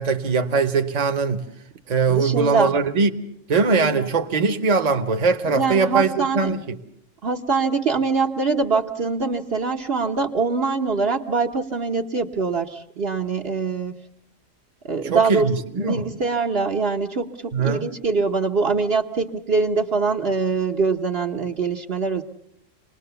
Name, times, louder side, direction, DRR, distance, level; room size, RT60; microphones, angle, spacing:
voice 1, 0.0-1.4 1.9-3.1 3.5-6.8 15.0-16.1 17.5-17.9, right 4 dB, 35° right, 1.1 m, -21 dB
voice 2, 2.1-2.8 3.7-4.0 5.5-6.5 7.2-13.9 14.8-15.5 15.8-22.2, right 4 dB, 55° right, 1.2 m, -23 dB
27.0 x 20.0 x 6.9 m
omnidirectional pair, 1.3 m